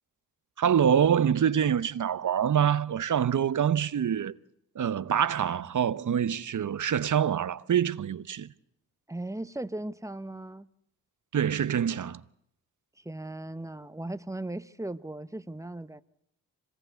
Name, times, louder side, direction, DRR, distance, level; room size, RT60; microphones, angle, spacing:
voice 1, 0.6-4.4 4.8-8.5 11.3-12.2, right 8 dB, 50° right, 0.9 m, -25 dB
voice 2, 9.1-10.7 13.0-16.0, right 1 dB, 10° right, 0.9 m, -37 dB
25.5 x 18.5 x 8.2 m
cardioid pair, 60°, 38 cm